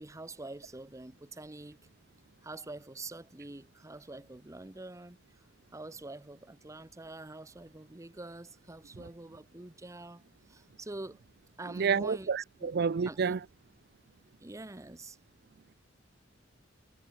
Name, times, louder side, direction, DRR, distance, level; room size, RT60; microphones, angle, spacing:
voice 1, 0.0-1.8 2.4-5.2 5.7-10.2 10.5-11.2 11.6-12.3 12.6-12.7 13.1-13.4 14.4-15.2, right 2 dB, 15° right, 0.7 m, -45 dB
voice 2, 11.8-13.4, right 6 dB, 55° right, 0.5 m, -29 dB
head